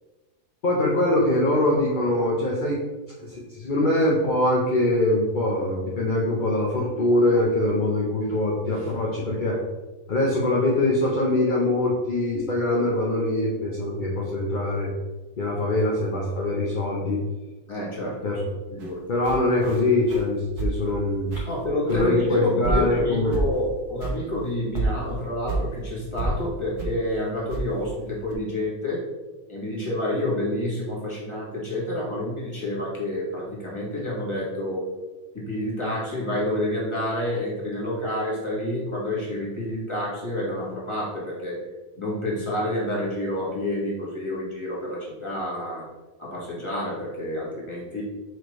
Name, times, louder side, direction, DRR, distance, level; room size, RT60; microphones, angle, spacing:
voice 1, 0.6-2.8 3.2-9.6 10.1-14.9 15.4-17.2 18.2-18.4 19.1-21.4 21.9-23.4, left 1 dB, 40° left, -4 dB, 0.8 m, -23 dB
voice 2, 17.7-18.2 18.7-19.0 21.5-29.1 29.5-34.9 35.3-41.6 42.0-45.9 46.2-48.0, left 1 dB, 20° left, -5 dB, 1.7 m, -28 dB
sound 1, 18.8-18.9 19.2-19.8 20.1-20.3 20.6-20.9 21.3-21.6 21.9-22.3 22.6-23.0 23.3-23.7 24.0-24.2 24.5-24.6 24.7-25.7 26.2-26.4 26.8-27.0 27.5-27.9 28.3-28.4, right 2 dB, 80° right, 1.5 m, -28 dB
6.2 x 4.8 x 3.1 m, 1.2 s
omnidirectional pair, 1.6 m